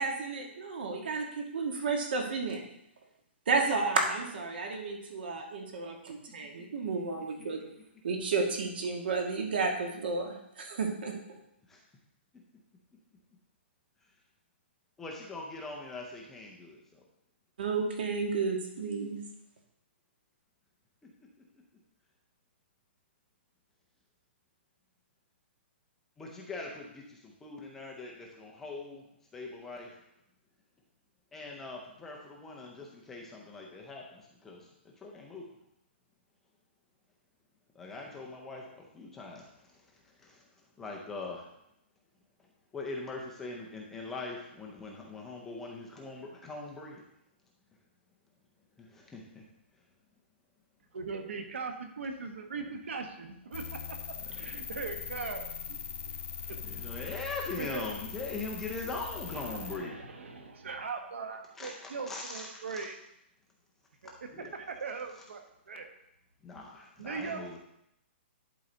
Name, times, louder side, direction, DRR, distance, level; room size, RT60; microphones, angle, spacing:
voice 1, 0.0-2.6 3.5-7.6 8.0-11.1 17.6-19.2, right 4 dB, 55° right, 2 dB, 1.6 m, -32 dB
voice 2, 6.8-7.6 11.7-11.8 15.0-17.0 26.2-29.0 29.3-29.9 31.3-35.4 37.7-39.8 40.2-40.4 40.8-41.5 42.7-47.0 48.8-49.4 56.5-60.0 61.6-62.8 64.3-64.5 66.4-67.6, left 3 dB, 5° left, -1 dB, 0.5 m, -42 dB
voice 3, 50.9-55.8 56.1-56.2 56.4-57.1 57.6-57.8 59.2-63.0 64.0-64.1 64.4-65.4 65.7-65.9 67.0-67.6, right 4 dB, 75° right, 5 dB, 1.2 m, -40 dB
sound 1, 53.5-59.8, left 6 dB, 85° left, 1.4 m, -41 dB
11.0 x 4.0 x 3.9 m, 0.80 s
hypercardioid pair, 175°, 6 cm